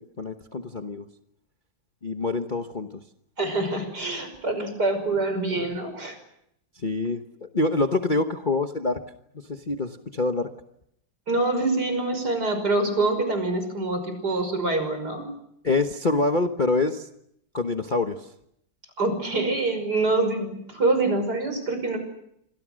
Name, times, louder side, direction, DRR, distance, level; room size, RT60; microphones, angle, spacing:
voice 1, 0.2-1.0 2.0-3.0 6.8-9.0 9.5-10.5 15.6-17.1 17.5-18.3, left 3 dB, 30° left, 5 dB, 1.1 m, -26 dB
voice 2, 3.4-6.2 11.3-15.3 19.0-22.0, right 2 dB, 55° right, 8 dB, 6.3 m, -25 dB
28.0 x 26.5 x 6.4 m, 0.75 s
omnidirectional pair, 2.1 m